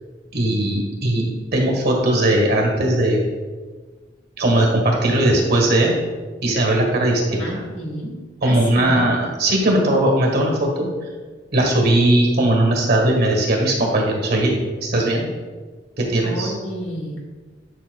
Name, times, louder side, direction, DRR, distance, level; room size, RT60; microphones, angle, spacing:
voice 1, 0.3-1.2 1.5-3.3 4.4-5.9 6.4-7.6 8.4-10.9 11.5-15.3 16.0-16.5, right 1 dB, 55° right, 0 dB, 1.5 m, -18 dB
voice 2, 7.4-9.1 16.2-17.2, equal, 90° left, -1 dB, 1.8 m, -31 dB
10.0 x 5.7 x 2.2 m, 1.4 s
head